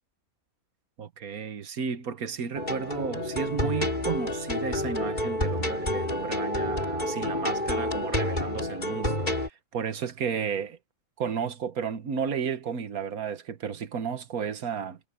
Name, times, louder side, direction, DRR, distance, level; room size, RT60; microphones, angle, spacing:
voice 1, 1.0-10.8 11.2-15.0, right 6 dB, 85° right, 1.7 m, -33 dB
sound 1, 2.5-9.5, left 1 dB, 30° left, 4.1 m, -29 dB
omnidirectional pair, 1.5 m